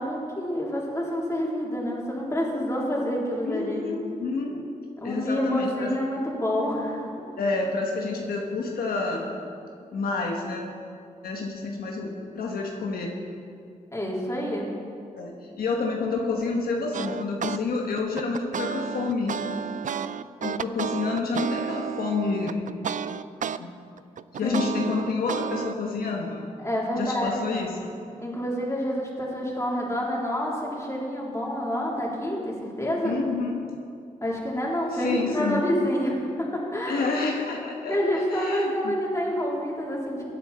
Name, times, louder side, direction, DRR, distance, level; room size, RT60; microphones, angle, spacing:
voice 1, 0.0-3.8 5.0-7.2 13.9-14.7 24.4-24.8 26.6-27.3 28.2-33.2 34.2-36.5 36.7-37.1 37.9-40.2, equal, 20° left, -4 dB, 3.5 m, -28 dB
voice 2, 3.4-4.6 5.0-5.9 7.4-9.4 9.9-10.7 11.2-13.1 15.1-19.4 20.4-22.7 23.6-23.7 24.3-26.5 26.9-27.7 33.0-33.5 34.9-35.6 36.9-38.9, left 4 dB, 85° left, 0 dB, 1.2 m, -29 dB
sound 1, 16.9-17.6 18.0-23.6 24.0-25.7, right 7 dB, 60° right, 0.4 m, -31 dB
16.5 x 8.9 x 4.3 m, 2.4 s
cardioid pair, 50°, 15 cm